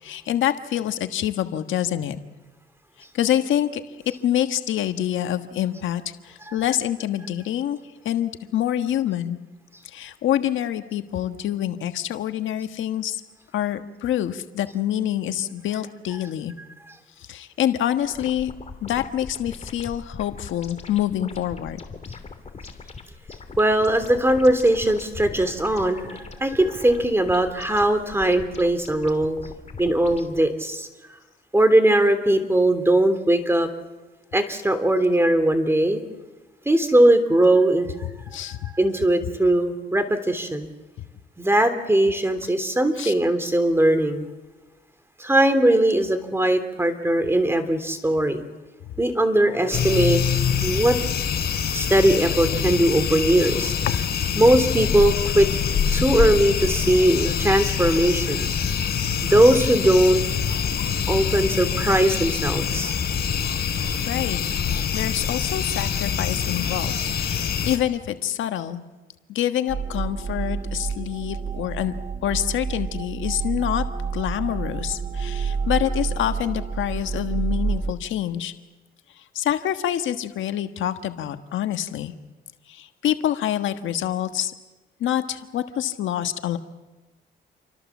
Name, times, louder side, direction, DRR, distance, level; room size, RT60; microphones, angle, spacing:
voice 1, 0.0-2.2 3.1-3.8 4.2-7.8 8.0-9.4 9.8-13.2 13.5-16.5 17.2-18.5 18.8-21.8 38.3-38.7 43.0-43.1 53.9-54.3 64.1-68.8 69.3-71.9 72.2-73.8 74.1-78.5 79.3-82.1 82.7-84.5 85.0-86.6, left 11 dB, 75° left, 8 dB, 1.5 m, -26 dB
sound 1, 18.0-30.4, left 4 dB, 35° left, 3.1 m, -41 dB
voice 2, 23.6-29.4 29.8-30.9 31.5-33.7 34.3-36.0 36.6-37.9 38.7-40.7 41.4-44.3 45.2-48.4 49.0-50.2 50.6-51.0 51.7-53.7 54.4-55.5 55.9-58.5 59.2-60.2 61.1-62.9, right 1 dB, 10° right, 10 dB, 3.2 m, -20 dB
sound 2, 49.7-67.8, left 7 dB, 55° left, 3.6 m, -25 dB
sound 3, 69.7-77.9, right 5 dB, 30° right, 1.5 m, -28 dB
28.5 x 24.0 x 7.3 m, 1.1 s
cardioid pair, 90°, 20 cm